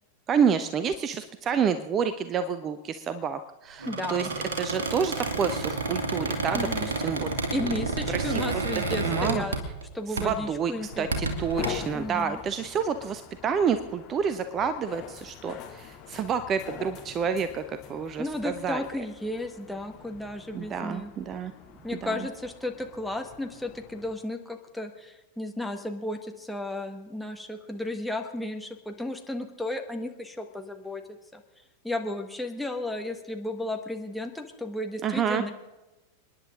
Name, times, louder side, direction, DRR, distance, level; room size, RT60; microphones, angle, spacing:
voice 1, 0.3-4.3 4.6-7.3 8.1-8.6 9.0-9.4 10.2-10.7 11.0-18.8 20.5-21.5 22.0-22.2 35.0-35.4, right 7 dB, 25° right, 12 dB, 0.7 m, -29 dB
voice 2, 3.8-4.3 6.5-6.9 7.5-9.6 9.9-11.1 11.9-12.4 18.2-21.1 21.8-31.4 31.8-35.5, left 1 dB, ahead, 4 dB, 1.5 m, -34 dB
Squeak, 3.8-9.9 10.2-10.4 10.9-11.7, right 3 dB, 65° right, 2.2 m, -30 dB
sound 1, 10.7-24.1, left 7 dB, 35° left, 2.4 m, -44 dB
30.0 x 10.5 x 3.8 m, 1.0 s
figure-of-eight pair, 90°, 0 cm